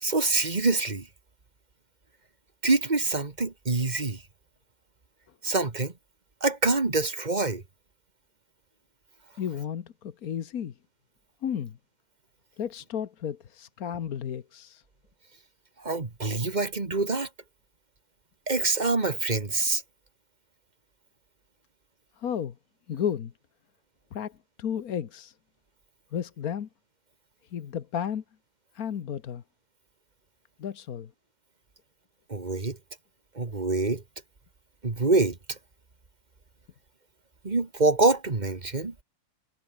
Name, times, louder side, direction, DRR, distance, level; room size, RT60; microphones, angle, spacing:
voice 1, 0.0-1.1 2.6-4.2 5.4-5.9 6.4-7.6 15.8-17.3 18.5-19.8 32.3-32.8 33.4-34.0 34.8-35.6 37.4-38.9, right 3 dB, 30° right, 1.9 m, -25 dB
voice 2, 9.4-10.7 11.4-11.8 12.6-14.8 22.2-22.5 22.9-23.3 24.1-24.3 24.6-25.3 26.1-26.7 27.5-28.2 28.7-29.4 30.6-31.1, left 8 dB, 85° left, 1.6 m, -33 dB
omnidirectional pair, 1.5 m